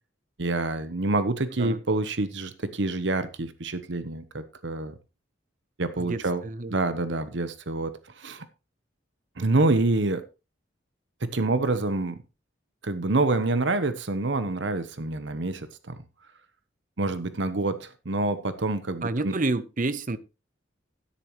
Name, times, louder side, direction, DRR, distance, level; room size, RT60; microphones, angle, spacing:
voice 1, 0.4-4.9 5.8-6.4 6.7-8.5 9.4-10.2 11.2-12.2 12.8-15.9 17.0-19.3, right 2 dB, 65° right, 0.9 m, -27 dB
voice 2, 6.0-6.7 19.0-20.2, right 2 dB, 45° right, 0.8 m, -29 dB
12.5 x 10.5 x 3.0 m
head